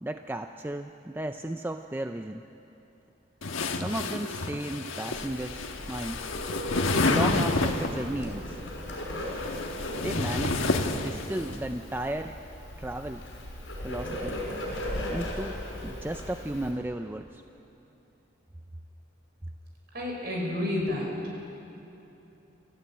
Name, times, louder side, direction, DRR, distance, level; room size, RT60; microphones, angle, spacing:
voice 1, 0.0-2.4 3.7-5.6 5.9-6.2 7.0-8.6 9.9-12.4 12.8-13.2 13.8-14.3 15.1-15.6 15.8-17.4, right 1 dB, 10° right, 7 dB, 0.4 m, -34 dB
sound 1, 3.4-8.1 9.1-11.6, left 3 dB, 85° left, 1.4 m, -29 dB
Bird, 5.1-16.7, left 1 dB, 65° left, 5.8 m, -37 dB
voice 2, 19.9-21.2, left 1 dB, 50° right, -2 dB, 5.6 m, -30 dB
26.0 x 14.5 x 8.8 m, 3.0 s
head